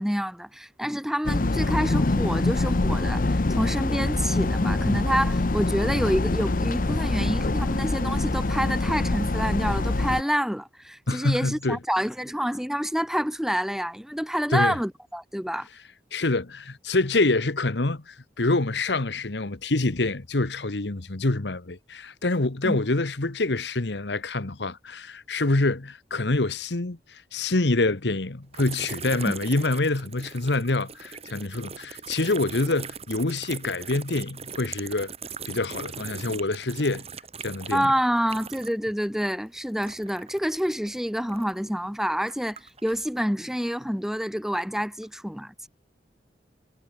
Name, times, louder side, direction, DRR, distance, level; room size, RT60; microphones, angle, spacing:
voice 1, 0.0-15.7 22.6-22.8 29.2-29.3 37.7-45.7, equal, 5° right, 2.6 m, -28 dB
sound 1, 1.2-10.2, left 2 dB, 50° left, 0.8 m, -25 dB
voice 2, 11.1-11.8 14.5-14.8 16.1-35.1 35.5-37.0 37.4-37.9, left 2 dB, 80° left, 1.4 m, -26 dB
sound 2, 28.5-38.9 39.2-41.7 42.2-43.0, right 5 dB, 35° right, 7.3 m, -40 dB
head